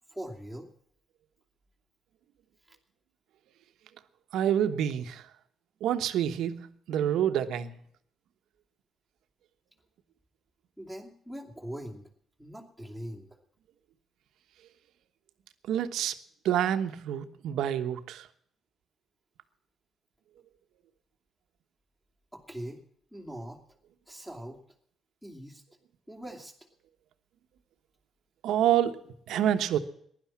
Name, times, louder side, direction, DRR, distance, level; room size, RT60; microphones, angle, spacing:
voice 1, 0.1-0.7 2.7-2.8 10.8-12.1 12.4-13.4 22.3-22.8 23.1-23.6 24.1-24.6 25.2-25.6 26.1-26.5, equal, 5° left, 2.7 m, -41 dB
voice 2, 4.3-5.3 5.8-7.8 15.6-16.2 16.4-18.3 28.4-29.8, right 10 dB, 85° right, 1.1 m, -28 dB
16.0 x 11.0 x 7.4 m
cardioid pair, 90°, 0 cm